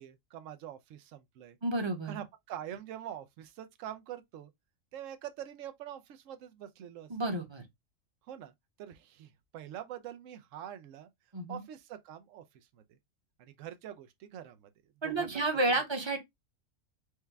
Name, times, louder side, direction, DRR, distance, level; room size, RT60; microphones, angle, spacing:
voice 1, 0.0-1.6 2.0-4.5 4.9-7.1 8.3-8.5 8.8-11.1 11.5-12.8 13.4-14.7 15.0-15.4, right 10 dB, 75° right, 1.0 m, -45 dB
voice 2, 1.6-2.2 7.1-7.6 11.3-11.6 15.0-16.2, right 2 dB, 25° right, 0.8 m, -31 dB
4.7 x 2.2 x 3.4 m
omnidirectional pair, 1.3 m